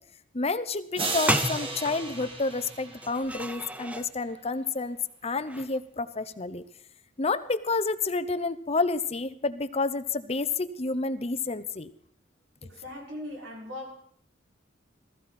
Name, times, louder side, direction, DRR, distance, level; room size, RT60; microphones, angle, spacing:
voice 1, 0.3-5.0 5.2-6.6 7.2-11.9, left 3 dB, 35° left, 13 dB, 0.9 m, -29 dB
sound 1, 1.0-1.1 1.3-4.1 5.4-5.7, right 1 dB, 5° right, 0.8 m, -33 dB
sound 2, 1.0-3.6, right 3 dB, 30° right, 2.0 m, -34 dB
voice 2, 12.6-14.0, left 1 dB, 85° right, -1 dB, 6.2 m, -40 dB
19.0 x 14.5 x 4.3 m, 0.65 s
head